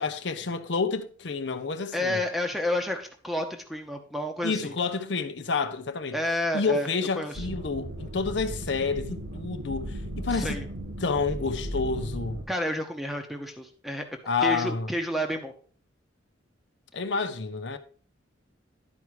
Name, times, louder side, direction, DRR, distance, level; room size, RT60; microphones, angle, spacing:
voice 1, 0.0-2.2 4.4-6.2 6.5-10.6 11.0-12.4 14.3-14.9 16.9-17.8, left 4 dB, 65° left, 0.7 m, -29 dB
voice 2, 1.9-4.7 6.1-6.9 7.2-7.5 10.3-10.6 12.5-14.0 14.4-15.5, left 1 dB, ahead, 0.9 m, -30 dB
sound 1, 7.3-12.4, equal, 85° right, 1.9 m, -36 dB
11.0 x 4.8 x 4.7 m
head